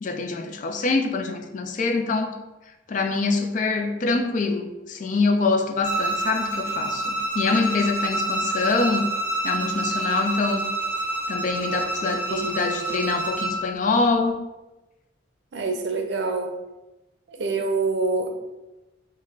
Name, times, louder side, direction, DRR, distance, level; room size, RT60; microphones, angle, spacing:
voice 1, 0.0-2.3 2.9-9.1 9.4-10.7 11.3-14.4, left 3 dB, 40° left, 5 dB, 0.4 m, -25 dB
Bowed string instrument, 5.8-13.6, right 2 dB, 10° right, 1.0 m, -28 dB
voice 2, 12.3-13.0 15.5-16.5 17.3-18.3, right 3 dB, 65° right, 4 dB, 0.5 m, -26 dB
5.2 x 2.1 x 3.8 m, 1.1 s
head